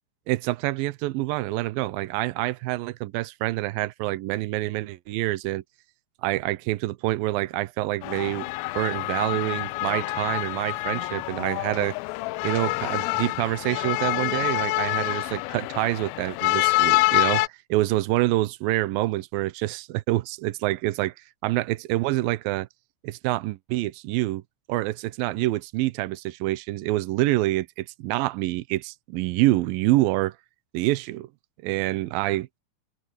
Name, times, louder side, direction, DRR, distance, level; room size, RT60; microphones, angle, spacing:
voice 1, 0.3-5.6 6.2-8.5 8.8-12.0 12.4-21.1 21.4-22.7 23.0-24.4 24.7-30.3 30.7-31.3 31.6-32.5, right 17 dB, 85° right, 2.5 m, -26 dB
sound 1, 8.0-17.5, left 21 dB, 90° left, 2.4 m, -26 dB
omnidirectional pair, 4.1 m